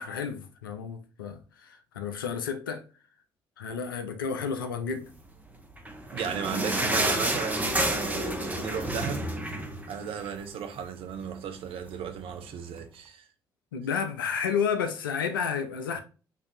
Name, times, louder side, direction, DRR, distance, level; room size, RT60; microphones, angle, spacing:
voice 1, 0.0-2.8 3.6-5.1 13.7-16.0, left 6 dB, 80° left, 0.4 m, -31 dB
sound 1, 5.7-10.5 10.8-10.9 11.2-11.4 12.0-12.1, right 1 dB, 15° right, 0.9 m, -29 dB
voice 2, 6.1-9.3 9.9-13.3, right 7 dB, 55° right, 0.7 m, -35 dB
5.0 x 2.7 x 2.6 m
figure-of-eight pair, 45°, 11 cm